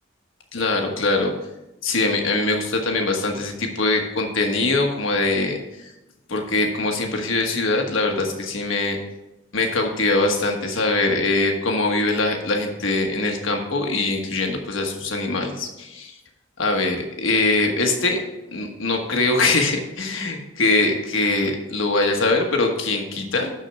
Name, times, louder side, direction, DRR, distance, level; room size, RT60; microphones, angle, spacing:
voice 1, 0.5-1.3 1.8-5.6 6.3-9.0 9.5-16.1 16.6-18.2 18.5-23.5, left 3 dB, 90° left, 3 dB, 1.3 m, -22 dB
6.5 x 6.4 x 5.8 m, 0.95 s
head